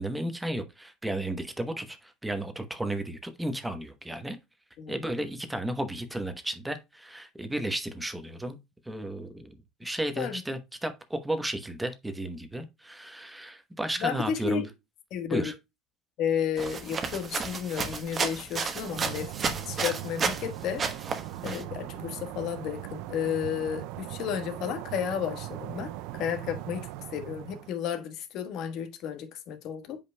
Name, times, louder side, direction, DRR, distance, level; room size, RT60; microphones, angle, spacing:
voice 1, 0.0-4.4 4.9-8.6 8.8-14.6 15.3-15.5, right 1 dB, 5° right, 1.0 m, -33 dB
voice 2, 14.0-14.7 15.1-15.5 16.2-19.3 19.7-20.8 21.4-30.0, left 8 dB, 60° left, 1.4 m, -32 dB
sound 1, 16.6-20.5 20.8-21.6, right 5 dB, 30° right, 1.1 m, -32 dB
sound 2, 18.8-27.7, right 14 dB, 80° right, 0.4 m, -40 dB
8.1 x 5.2 x 2.2 m
cardioid pair, 130°, 0 cm